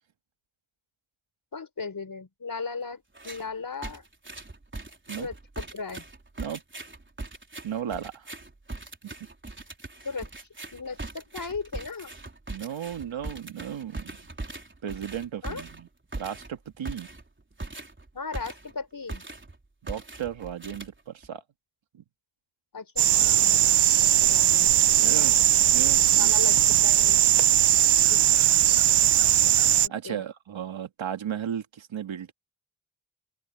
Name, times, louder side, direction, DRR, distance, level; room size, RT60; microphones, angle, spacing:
voice 1, 1.5-4.0 5.2-6.0 10.0-10.3 10.7-12.1 15.4-15.6 18.1-19.2 22.7-25.5 25.9-27.2 28.1-28.5 29.8-30.2, left 4 dB, 45° left, 4.5 m, -37 dB
sound 1, 3.1-3.5 3.8-18.8 19.1-19.6 19.9-21.3, right 2 dB, 25° right, 4.0 m, -40 dB
voice 2, 7.6-8.3 9.0-9.1 12.5-14.2 14.8-15.9 16.2-17.1 19.8-21.4 21.9-22.0 25.0-26.3 29.9-32.3, right 9 dB, 85° right, 1.8 m, -35 dB
sound 2, 23.0-29.9, right 11 dB, 60° right, 0.6 m, -19 dB
open air
cardioid pair, 80°, 46 cm